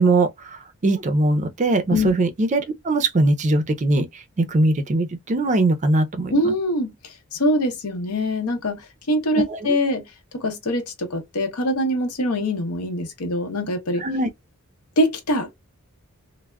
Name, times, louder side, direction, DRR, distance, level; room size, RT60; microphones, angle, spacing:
voice 1, 0.0-6.5 9.5-9.8 14.0-14.3, right 2 dB, 35° right, 0.4 m, -21 dB
voice 2, 6.3-10.1 10.3-14.0 15.0-15.5, left 1 dB, 85° left, 0.8 m, -23 dB
3.3 x 2.0 x 2.2 m
head